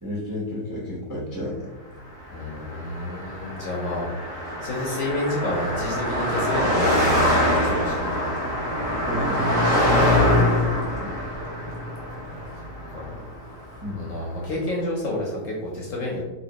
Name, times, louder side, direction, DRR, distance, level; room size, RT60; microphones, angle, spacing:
voice 1, 0.0-1.7 9.1-9.5 11.0-11.1 13.8-14.1, left 1 dB, 30° right, -6 dB, 0.3 m, -31 dB
voice 2, 2.3-8.3 12.9-13.1 13.9-16.2, left 1 dB, 60° left, -3 dB, 0.9 m, -30 dB
Car passing by, 2.3-13.8, left 1 dB, 50° right, 1.2 m, -24 dB
4.3 x 2.6 x 2.9 m, 1.1 s
omnidirectional pair, 2.0 m